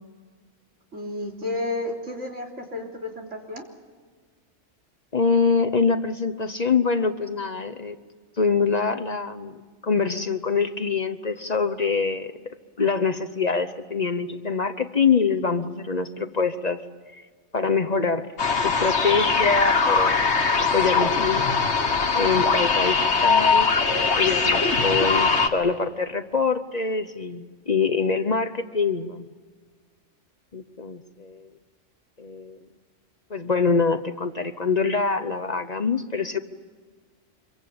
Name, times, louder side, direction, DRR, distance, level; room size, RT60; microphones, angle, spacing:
voice 1, 0.9-3.7, left 2 dB, 85° right, 1 dB, 3.8 m, -32 dB
voice 2, 5.1-8.0 8.4-12.3 12.8-16.8 17.5-18.3 18.6-20.3 20.7-21.4 22.1-29.3 30.5-31.5 32.2-32.6 33.3-36.4, left 4 dB, 40° left, 9 dB, 0.9 m, -24 dB
sound 1, 18.4-25.5, left 4 dB, 65° left, 1.9 m, -21 dB
26.5 x 23.0 x 8.6 m, 1.5 s
omnidirectional pair, 1.2 m